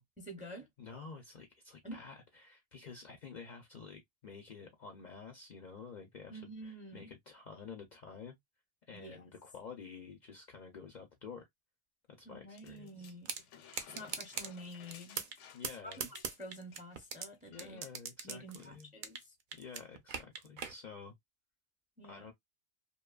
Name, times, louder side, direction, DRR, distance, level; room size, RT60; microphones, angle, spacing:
voice 1, 0.2-0.7 1.8-2.1 6.3-7.1 8.9-9.2 12.2-13.3 13.9-15.2 15.8-17.8 18.2-19.3 22.0-22.3, right 1 dB, 10° right, 0.5 m, -49 dB
voice 2, 0.8-8.4 8.9-11.5 12.2-13.1 15.5-16.1 17.5-18.9 19.6-21.1 22.0-22.3, left 5 dB, 55° left, 0.5 m, -50 dB
sound 1, 12.6-16.8 17.1-17.2 17.5-18.0 18.7-18.8, left 8 dB, 85° left, 0.9 m, -57 dB
sound 2, 13.3-13.4 13.7-14.5 14.9-15.4 15.6-17.3 17.6-19.3 19.5-20.7, right 6 dB, 60° right, 0.5 m, -39 dB
2.7 x 2.2 x 2.2 m
omnidirectional pair, 1.2 m